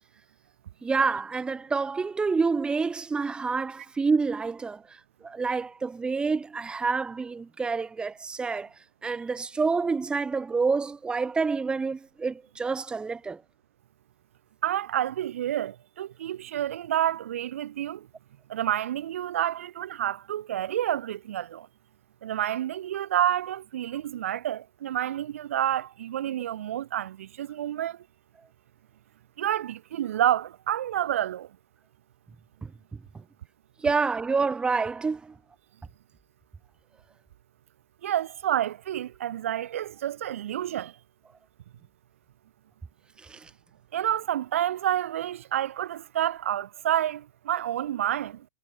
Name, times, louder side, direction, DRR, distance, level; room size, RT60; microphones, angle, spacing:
voice 1, 0.8-8.7 9.0-13.4 32.6-32.7 33.1-33.2 33.8-35.4 43.2-43.5, right 4 dB, 10° right, 1.9 m, -28 dB
voice 2, 14.6-18.1 18.5-21.7 22.2-28.0 29.4-31.5 38.0-41.0 43.9-48.5, right 11 dB, 55° right, 1.8 m, -29 dB
figure-of-eight pair, 100°, 9 cm